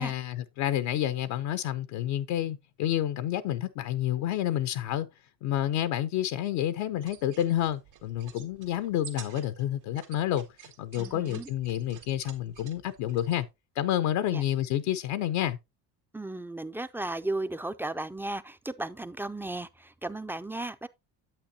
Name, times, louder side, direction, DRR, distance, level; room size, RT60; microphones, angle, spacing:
voice 1, 0.0-5.1 5.4-13.5 13.8-15.6, left 12 dB, 70° left, 0.8 m, -29 dB
sound 1, 6.9-13.4, right 9 dB, 85° right, 1.9 m, -50 dB
voice 2, 11.0-11.5 14.3-14.4 16.1-20.9, right 2 dB, 5° right, 0.4 m, -35 dB
9.0 x 8.0 x 2.7 m
hypercardioid pair, 65°, 49 cm